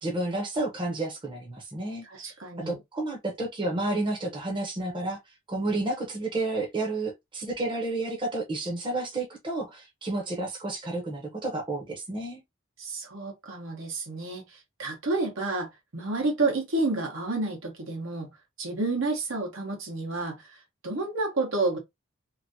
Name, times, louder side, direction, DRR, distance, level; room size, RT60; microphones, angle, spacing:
voice 1, 0.0-2.0 2.6-5.2 5.5-12.4, right 2 dB, 25° right, 0.8 m, -31 dB
voice 2, 2.0-2.8 12.8-18.3 18.6-20.6 20.8-21.8, right 3 dB, 75° right, 1.2 m, -30 dB
3.0 x 2.7 x 2.6 m
head